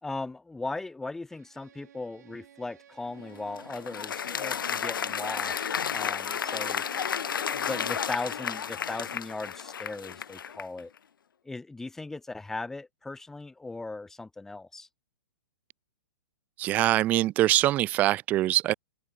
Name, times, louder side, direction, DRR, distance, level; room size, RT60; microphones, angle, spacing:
voice 1, 0.0-6.8 7.5-10.9 11.5-14.9, left 3 dB, 5° left, 3.6 m, -38 dB
Bowed string instrument, 1.3-8.2, right 10 dB, 55° right, 7.9 m, -53 dB
Applause, 3.2-10.8, left 8 dB, 80° left, 3.8 m, -32 dB
voice 2, 16.6-18.7, right 15 dB, 15° right, 0.6 m, -23 dB
open air
hypercardioid pair, 175°, 11 cm